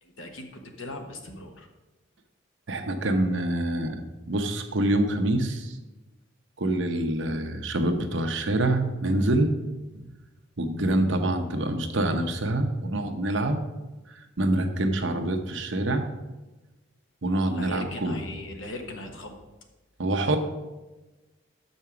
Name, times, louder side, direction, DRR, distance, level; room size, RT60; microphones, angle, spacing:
voice 1, 0.0-1.7 17.4-19.3, left 2 dB, 70° left, 4 dB, 1.2 m, -39 dB
voice 2, 2.7-4.0 4.3-5.8 6.6-9.5 9.9-10.0 10.6-13.6 14.2-16.0 17.2-18.2 20.0-20.4, right 1 dB, 65° right, 6 dB, 0.8 m, -26 dB
6.7 x 5.4 x 6.0 m, 1.1 s
head